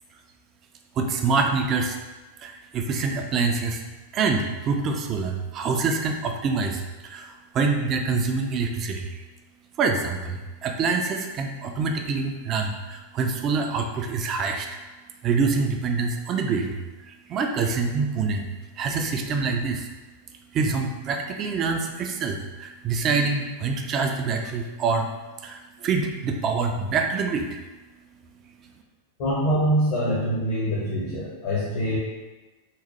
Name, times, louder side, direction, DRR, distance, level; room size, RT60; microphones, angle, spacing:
voice 1, 1.0-2.0 2.4-3.8 4.1-9.2 9.8-14.8 15.2-16.7 17.0-18.5 18.8-19.9 20.5-25.1 25.4-27.6, right 4 dB, 30° right, 4 dB, 0.3 m, -26 dB
voice 2, 29.2-32.0, equal, 45° left, -8 dB, 0.7 m, -24 dB
3.0 x 2.0 x 2.9 m, 1.2 s
figure-of-eight pair, 90°, 0 cm